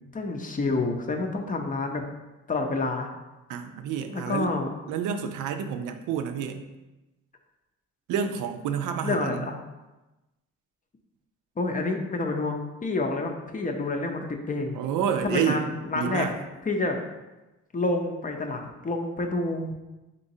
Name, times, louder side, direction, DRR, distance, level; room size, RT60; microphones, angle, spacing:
voice 1, 0.0-2.0 2.5-3.1 4.1-4.7 9.0-9.6 11.6-14.8 15.2-16.3 16.6-17.0 17.7-19.7, left 2 dB, 30° left, 3 dB, 0.5 m, -28 dB
voice 2, 3.5-4.5 4.9-6.6 8.1-9.5 14.7-15.7 15.9-16.4, right 8 dB, 85° right, 7 dB, 0.5 m, -29 dB
4.0 x 3.7 x 2.7 m, 1.0 s
cardioid pair, 90°, 30 cm